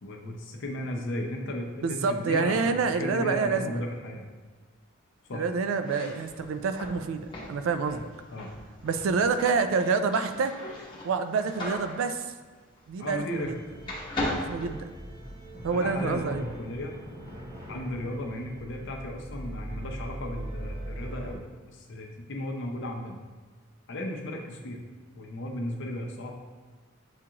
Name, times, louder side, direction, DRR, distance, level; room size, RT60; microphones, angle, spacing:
voice 1, 0.0-4.2 5.3-5.4 8.3-8.5 13.0-13.5 15.7-17.0 17.7-21.4 21.7-23.1 23.9-24.8 25.2-26.3, left 1 dB, 60° left, 1 dB, 0.6 m, -35 dB
voice 2, 1.8-3.8 5.3-8.0 8.8-10.6 11.0-12.3 12.9-13.6 14.4-14.9 15.6-16.5, right 4 dB, 70° right, 9 dB, 0.3 m, -27 dB
sound 1, 5.7-13.5 13.8-15.5, left 1 dB, 25° left, 0.9 m, -38 dB
sound 2, 13.0-21.3, right 1 dB, 30° right, 0.9 m, -41 dB
7.2 x 2.4 x 2.8 m, 1.4 s
head